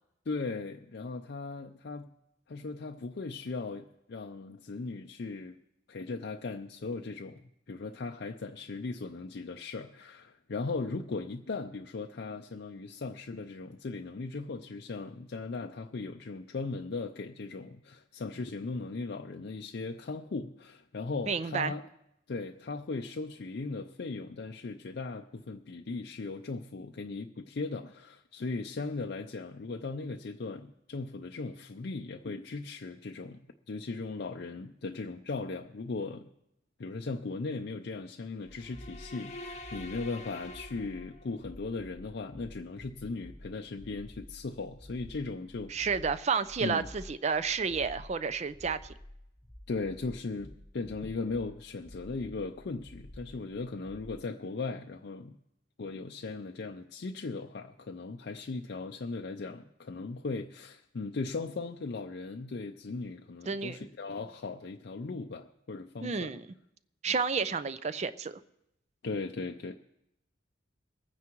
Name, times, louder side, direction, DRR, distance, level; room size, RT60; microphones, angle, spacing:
voice 1, 0.3-2.1 2.5-5.5 5.9-7.4 7.7-21.9 22.3-36.3 36.8-45.7 46.6-46.9 49.7-55.3 55.8-66.3 69.0-69.7, left 3 dB, 55° left, 3 dB, 0.5 m, -38 dB
voice 2, 21.3-21.7 45.7-48.9 63.5-63.8 66.0-66.4 67.0-68.4, right 5 dB, 35° right, 13 dB, 0.4 m, -31 dB
sound 1, 38.5-41.5, left 2 dB, 35° left, 0.8 m, -46 dB
sound 2, 38.5-54.3, left 1 dB, 10° left, 0.9 m, -51 dB
23.0 x 9.5 x 3.0 m, 0.85 s
head